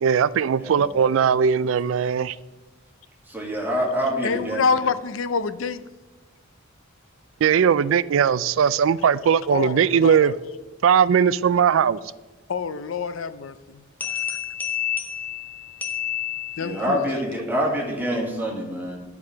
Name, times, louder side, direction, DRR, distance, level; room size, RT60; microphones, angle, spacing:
voice 1, 0.0-2.4 7.4-10.3 10.8-12.0, right 7 dB, 75° right, 18 dB, 0.3 m, -19 dB
voice 2, 0.6-1.0 3.3-4.6 16.6-19.0, equal, 10° right, -3 dB, 2.0 m, -26 dB
voice 3, 4.2-5.8 9.5-10.4 12.5-14.4 16.6-17.0, left 5 dB, 75° left, 13 dB, 0.5 m, -27 dB
sound 1, 14.0-16.9, left 10 dB, 10° left, 0.9 m, -29 dB
11.0 x 4.8 x 5.7 m, 1.2 s
head